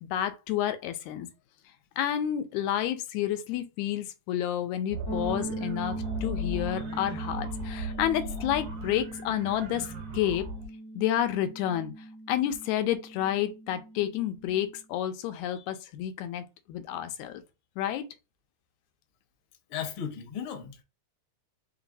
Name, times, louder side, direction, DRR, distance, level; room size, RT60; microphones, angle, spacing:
voice 1, 0.0-1.3 2.0-10.5 11.0-11.9 12.3-17.4 17.8-18.0, left 11 dB, 85° left, 2.0 m, -30 dB
sound 1, 4.9-10.7, right 1 dB, 65° right, 1.6 m, -38 dB
sound 2, 5.1-14.8, right 1 dB, 40° left, 0.8 m, -40 dB
voice 2, 19.7-20.8, left 8 dB, 65° left, 1.3 m, -35 dB
4.6 x 3.0 x 2.6 m
omnidirectional pair, 3.3 m